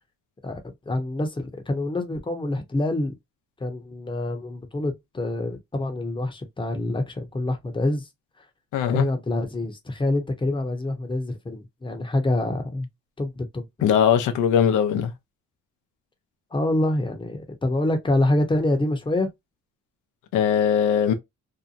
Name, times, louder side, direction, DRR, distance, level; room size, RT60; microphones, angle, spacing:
voice 1, 0.9-3.1 3.6-8.1 8.9-12.9 13.2-13.6 16.5-19.3, left 1 dB, 15° left, 0.8 m, -26 dB
voice 2, 8.7-9.1 13.8-15.1 20.3-21.1, left 8 dB, 85° left, 0.7 m, -20 dB
2.8 x 2.1 x 2.5 m
cardioid pair, 90°, 30 cm